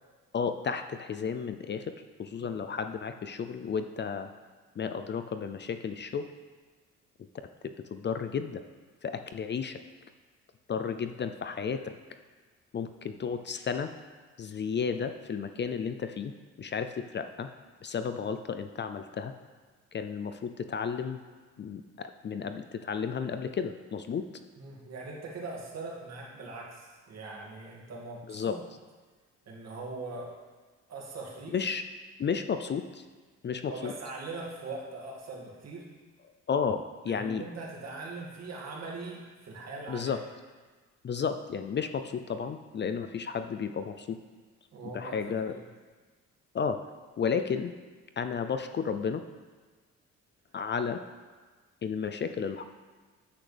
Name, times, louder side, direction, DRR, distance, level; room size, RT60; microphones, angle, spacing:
voice 1, 0.3-4.3 4.8-6.3 7.4-8.6 9.0-9.8 10.7-12.0 12.7-13.9 14.4-16.3 16.6-17.5 17.8-19.3 19.9-21.2 21.6-24.3 28.3-28.6 31.5-31.8 32.2-33.0 33.4-33.9 36.5-37.4 39.9-40.2 41.0-44.2 44.8-45.5 46.5-46.8 47.2-47.7 48.2-49.2 50.5-51.0 51.8-52.6, left 6 dB, 35° left, 9 dB, 0.5 m, -33 dB
voice 2, 24.6-28.6 29.5-30.3 30.9-31.5 33.7-35.8 37.0-40.1 44.7-45.6, right 3 dB, 60° right, -3 dB, 2.4 m, -41 dB
9.8 x 8.3 x 3.4 m, 1.4 s
cardioid pair, 90°, 30 cm